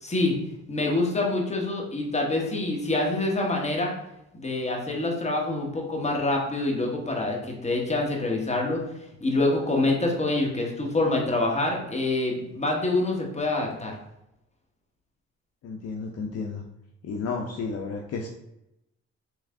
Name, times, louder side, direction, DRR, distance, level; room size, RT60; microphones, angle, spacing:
voice 1, 0.0-0.3 0.7-3.9 4.3-8.8 9.2-13.9, left 2 dB, 20° left, 0 dB, 1.1 m, -26 dB
voice 2, 15.6-16.6 17.0-18.3, left 4 dB, 55° left, 2 dB, 0.5 m, -32 dB
3.3 x 3.2 x 3.6 m, 0.86 s
cardioid pair, 90°, 30 cm